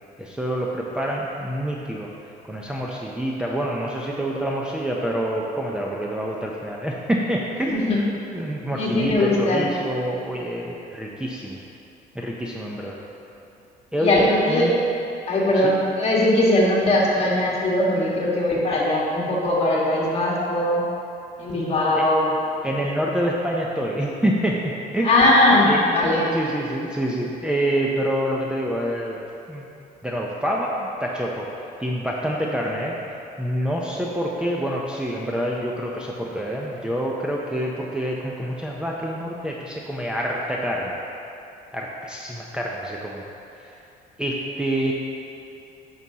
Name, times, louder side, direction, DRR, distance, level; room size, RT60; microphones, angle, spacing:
voice 1, 0.2-2.1 2.4-11.6 12.1-13.0 13.9-14.8 15.6-15.7 22.0-22.1 22.6-25.2 25.6-25.9 26.3-29.2 29.5-29.7 30.0-31.5 31.8-33.0 33.4-41.0 41.7-43.2 43.6-43.8 44.2-44.9, right 1 dB, 5° right, -3 dB, 0.6 m, -27 dB
voice 2, 8.7-9.7 14.0-14.7 15.3-20.8 21.4-22.3 25.0-26.3, left 1 dB, 35° left, -4 dB, 1.6 m, -20 dB
9.1 x 6.2 x 2.9 m, 2.9 s
cardioid pair, 110°, 17 cm